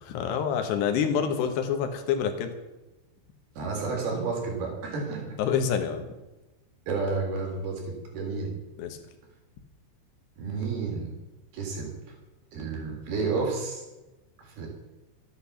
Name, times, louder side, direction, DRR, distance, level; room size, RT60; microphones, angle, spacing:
voice 1, 0.0-2.5 5.4-6.1 8.8-9.0, left 7 dB, 70° left, 6 dB, 3.0 m, -27 dB
voice 2, 3.6-5.4 6.9-8.6 10.4-11.1 11.5-12.2 12.5-13.8 14.4-14.7, right 4 dB, 50° right, 0 dB, 5.4 m, -31 dB
13.5 x 10.5 x 7.1 m, 1.1 s
omnidirectional pair, 5.9 m